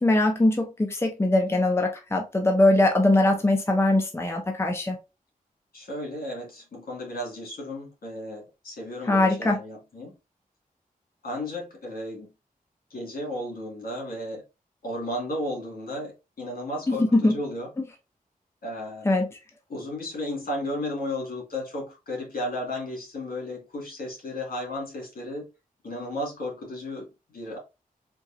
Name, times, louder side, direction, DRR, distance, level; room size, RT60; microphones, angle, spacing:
voice 1, 0.0-5.0 9.1-9.6 16.9-17.4 19.1-19.2, left 2 dB, 15° left, 0.8 m, -21 dB
voice 2, 5.7-10.1 11.2-12.3 12.9-14.4 14.8-17.7 18.6-19.2 19.7-25.5 25.8-27.6, left 1 dB, 75° left, 2.1 m, -34 dB
4.6 x 2.6 x 2.6 m
wide cardioid pair, 80°, 15 cm